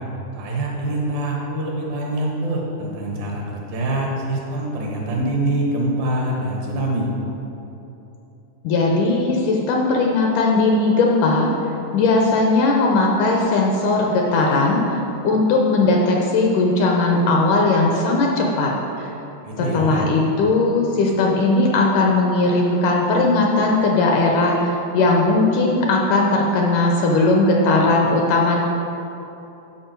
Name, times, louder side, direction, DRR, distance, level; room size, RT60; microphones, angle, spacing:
voice 1, 0.4-7.1 19.4-20.0, right 1 dB, 75° right, -2 dB, 3.0 m, -24 dB
voice 2, 8.6-11.5 11.9-18.7 19.0-19.1 19.6-28.6, left 3 dB, 75° left, 0 dB, 2.0 m, -18 dB
12.5 x 5.4 x 4.5 m, 3.0 s
omnidirectional pair, 4.2 m